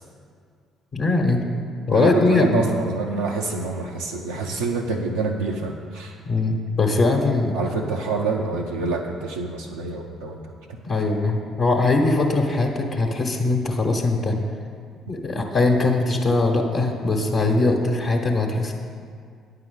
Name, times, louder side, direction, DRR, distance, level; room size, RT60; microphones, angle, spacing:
voice 1, 0.9-1.4 1.9-2.6 6.3-7.6 10.8-14.4 15.1-18.7, left 2 dB, 50° left, -1 dB, 1.1 m, -21 dB
voice 2, 1.9-6.2 7.5-10.8, right 4 dB, 85° right, -3 dB, 0.6 m, -27 dB
9.3 x 5.7 x 7.8 m, 2.1 s
figure-of-eight pair, 50°, 0 cm